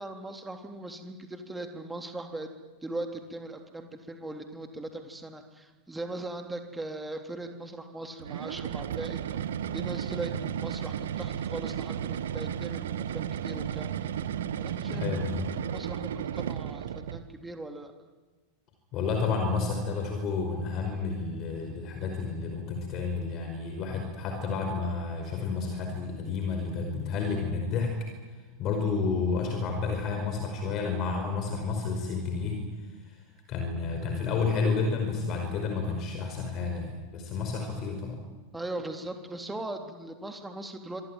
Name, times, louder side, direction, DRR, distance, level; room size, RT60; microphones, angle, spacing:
voice 1, 0.0-2.5 2.8-9.4 9.7-14.1 14.6-15.2 15.5-17.9 38.5-41.0, right 2 dB, 10° right, 5 dB, 3.6 m, -39 dB
sound 1, 8.2-17.3, right 9 dB, 60° right, 1.4 m, -34 dB
voice 2, 14.9-15.5 18.9-27.9 28.6-32.6 33.1-33.2 33.5-38.2, left 4 dB, 35° left, 4 dB, 5.2 m, -30 dB
26.0 x 23.5 x 9.3 m, 1.3 s
figure-of-eight pair, 90°, 0 cm